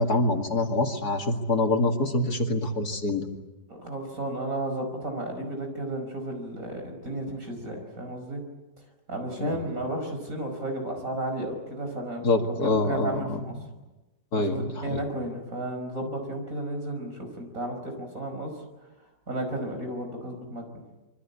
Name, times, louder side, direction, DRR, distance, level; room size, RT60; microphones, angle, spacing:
voice 1, 0.0-3.3 9.4-9.6 12.2-13.4 14.3-15.0, left 2 dB, 60° left, 3 dB, 2.7 m, -25 dB
voice 2, 3.7-8.4 9.1-12.3 12.9-13.5 14.4-18.5 19.3-20.8, right 1 dB, 45° right, 4 dB, 5.8 m, -33 dB
26.0 x 24.5 x 8.5 m, 1.1 s
omnidirectional pair, 1.9 m